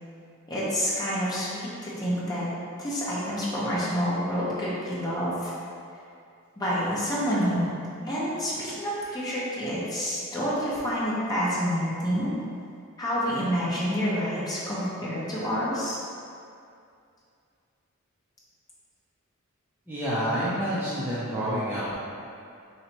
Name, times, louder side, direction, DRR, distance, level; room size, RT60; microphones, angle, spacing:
voice 1, 0.5-2.4 2.8-5.5 6.6-12.3 13.0-16.0, equal, 20° left, -9 dB, 1.0 m, -28 dB
voice 2, 19.9-21.9, equal, 10° right, -11 dB, 0.6 m, -28 dB
3.9 x 2.8 x 4.5 m, 2.4 s
head